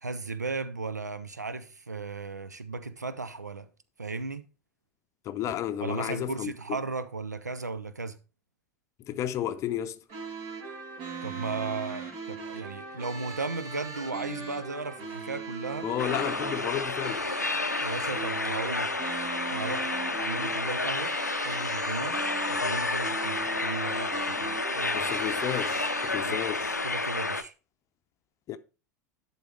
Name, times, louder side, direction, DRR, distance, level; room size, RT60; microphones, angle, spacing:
voice 1, 0.0-3.7 4.0-4.4 5.8-8.2 11.2-15.9 17.8-18.9 19.5-21.1 21.4-22.2 22.5-25.0 26.2-26.4 26.8-27.5, right 3 dB, 85° right, 0.6 m, -36 dB
voice 2, 5.2-6.5 9.0-10.0 15.8-17.3 24.9-26.8 28.5-28.6, left 11 dB, 35° left, 0.6 m, -32 dB
sound 1, 10.1-26.1, right 5 dB, 50° right, 2.7 m, -39 dB
sound 2, 16.0-27.4, left 3 dB, 90° left, 0.5 m, -30 dB
11.0 x 3.9 x 4.7 m
figure-of-eight pair, 80°, 9 cm